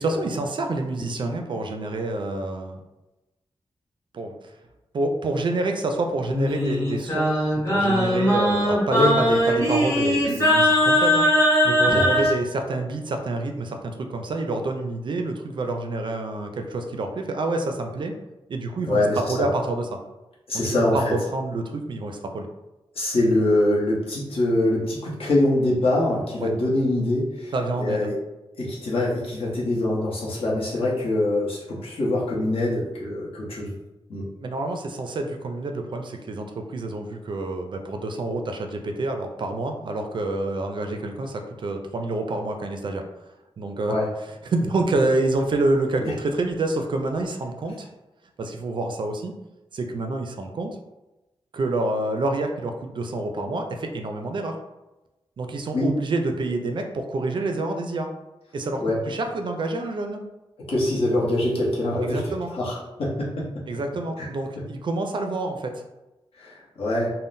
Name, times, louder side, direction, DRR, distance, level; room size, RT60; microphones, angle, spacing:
voice 1, 0.0-2.8 4.1-4.3 4.9-7.4 7.7-11.3 11.6-18.1 18.5-20.0 20.6-22.5 26.4-26.5 27.5-28.1 34.4-43.0 43.6-44.0 44.5-47.9 48.4-49.3 49.7-50.8 51.5-54.6 55.4-58.1 58.5-60.2 62.0-62.5 63.7-65.8, right 2 dB, 50° right, 4 dB, 0.4 m, -27 dB
Singing, 6.3-12.3, equal, 25° left, 0.8 m, -20 dB
voice 2, 11.9-12.3 18.8-19.5 20.5-21.2 22.9-28.1 28.6-33.7 34.1-34.2 43.9-44.1 46.0-46.1 55.7-55.9 58.8-59.0 60.7-63.3 64.2-64.3 66.4-67.1, left 1 dB, 70° left, -5 dB, 0.9 m, -24 dB
3.6 x 2.0 x 2.5 m, 1.0 s
wide cardioid pair, 150°, 10 cm